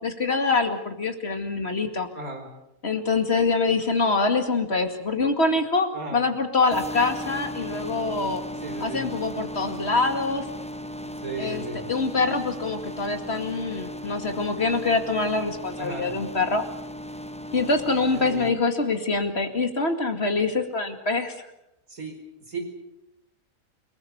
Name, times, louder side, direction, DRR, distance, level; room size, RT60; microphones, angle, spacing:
voice 1, 0.0-2.1 2.8-8.4 8.8-10.4 11.4-11.6 11.9-16.6 17.5-21.5, left 3 dB, 50° left, 6 dB, 2.5 m, -25 dB
voice 2, 2.1-2.5 5.9-6.2 8.6-9.0 11.0-11.8 15.8-16.1 18.1-18.5 21.9-22.1 22.5-22.6, right 3 dB, 90° right, 3 dB, 5.2 m, -35 dB
Ping pong saw, 6.7-18.5, equal, 5° left, 0.7 m, -36 dB
30.0 x 20.0 x 7.0 m, 0.87 s
omnidirectional pair, 1.5 m